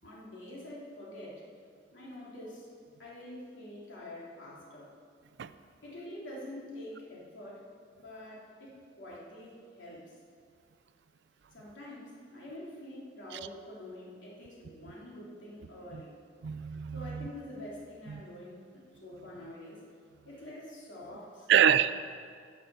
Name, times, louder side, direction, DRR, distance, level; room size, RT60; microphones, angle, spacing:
voice 1, 0.0-1.4 1.9-2.7 3.0-4.9 5.8-7.7 8.0-10.0 11.5-16.2 16.9-19.8 20.2-21.7, left 1 dB, 75° left, -5 dB, 3.1 m, -46 dB
voice 2, 16.4-17.3 18.1-18.2 21.5-21.9, right 9 dB, 65° right, 14 dB, 0.4 m, -25 dB
9.6 x 7.5 x 6.8 m, 2.1 s
head